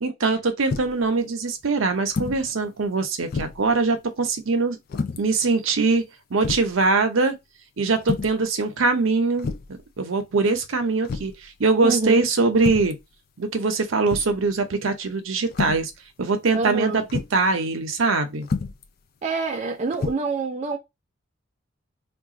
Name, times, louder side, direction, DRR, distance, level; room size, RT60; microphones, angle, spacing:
voice 1, 0.0-4.8 5.2-6.0 6.3-7.3 7.8-9.5 10.0-13.0 13.4-15.9 16.2-18.5, right 3 dB, 75° right, 0.7 m, -22 dB
sound 1, 0.7-1.0 2.1-2.4 2.8-2.9 3.3-3.7 4.9-5.2 6.0-6.1 6.4-6.7 8.0-8.4 9.4-9.8 11.0-11.4 12.6-13.0 14.1-14.4 15.5-15.9 17.1-17.4 18.4-18.9 19.9-20.1, left 4 dB, 45° left, 0.3 m, -29 dB
voice 2, 11.8-12.2 16.5-17.0 19.2-20.8, right 3 dB, 35° right, 0.3 m, -26 dB
2.4 x 2.2 x 3.8 m
head